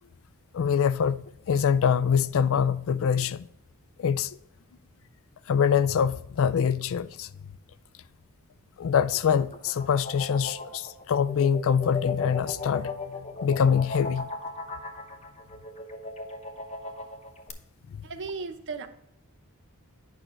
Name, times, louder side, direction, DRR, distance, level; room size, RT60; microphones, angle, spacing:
voice 1, 0.5-3.4 4.0-4.3 5.5-7.3 8.8-14.3, left 7 dB, 65° left, 0.4 m, -24 dB
sound 1, 9.0-17.5, left 3 dB, 30° left, 0.8 m, -37 dB
voice 2, 18.0-18.9, right 4 dB, 55° right, 0.7 m, -35 dB
9.0 x 5.6 x 3.2 m
head